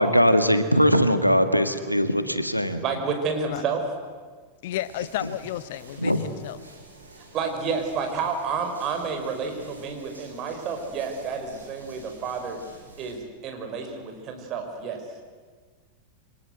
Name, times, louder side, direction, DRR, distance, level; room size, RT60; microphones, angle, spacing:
voice 1, 0.0-2.8 6.0-6.2, equal, 90° left, 10 dB, 1.8 m, -20 dB
voice 2, 2.8-3.8 7.3-12.6 13.0-15.0, right 5 dB, 35° right, 4 dB, 5.5 m, -30 dB
voice 3, 4.6-6.6, left 13 dB, 55° left, 16 dB, 0.9 m, -32 dB
sound 1, 4.7-13.1, right 2 dB, 80° right, 6.2 m, -49 dB
28.0 x 24.5 x 8.0 m, 1.5 s
figure-of-eight pair, 90°, 0 cm